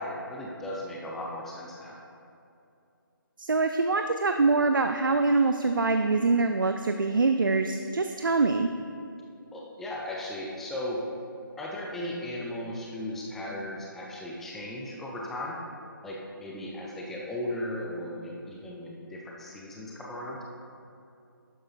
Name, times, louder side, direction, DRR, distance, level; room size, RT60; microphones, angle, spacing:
voice 1, 0.0-2.0 9.5-11.0 11.6-15.6 16.0-20.4, left 1 dB, ahead, -3 dB, 0.4 m, -36 dB
voice 2, 3.4-8.7, right 3 dB, 65° right, 6 dB, 0.5 m, -24 dB
11.5 x 10.0 x 2.4 m, 2.6 s
figure-of-eight pair, 150°, 12 cm